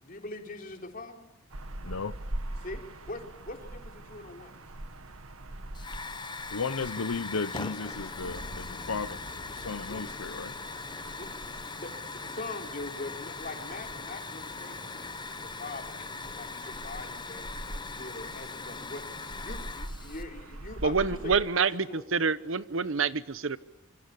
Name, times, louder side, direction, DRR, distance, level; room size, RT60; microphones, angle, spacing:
voice 1, 0.0-1.3 2.6-2.8 3.1-4.6 9.9-10.0 11.2-11.3 11.8-17.4 18.0-19.0 19.4-22.3, left 2 dB, 40° left, 4 dB, 3.9 m, -42 dB
sound 1, 1.5-21.4, right 1 dB, 85° right, 1.7 m, -44 dB
voice 2, 1.8-2.1 6.5-9.2 9.5-10.5, left 4 dB, 85° left, 14 dB, 0.9 m, -34 dB
Hiss / Fire, 5.7-20.2, left 4 dB, 20° left, 0.9 m, -40 dB
sound 2, 8.2-10.4, left 1 dB, 60° left, 2.8 m, -48 dB
voice 3, 20.8-23.6, right 5 dB, 65° right, 16 dB, 0.9 m, -27 dB
26.5 x 25.5 x 8.4 m, 0.94 s
head